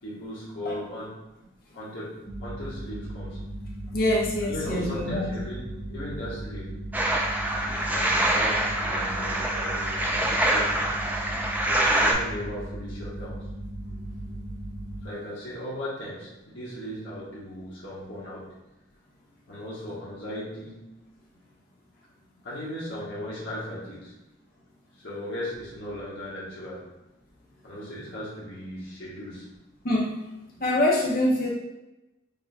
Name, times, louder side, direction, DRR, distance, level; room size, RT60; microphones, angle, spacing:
voice 1, 0.0-1.3 1.7-3.4 4.4-6.8 7.7-11.0 11.6-13.5 15.0-18.6 19.5-21.0 22.4-24.2 25.0-26.9 27.6-29.5, left 1 dB, 65° left, -8 dB, 1.3 m, -37 dB
sound 1, 2.2-15.1, right 1 dB, 35° right, 1.0 m, -37 dB
voice 2, 3.9-5.4 7.6-7.7 29.8-30.1 30.6-31.5, left 1 dB, 45° left, -3 dB, 0.7 m, -25 dB
sound 2, 6.9-12.1, right 1 dB, 10° right, 0.3 m, -25 dB
6.6 x 2.2 x 2.7 m, 1.0 s
head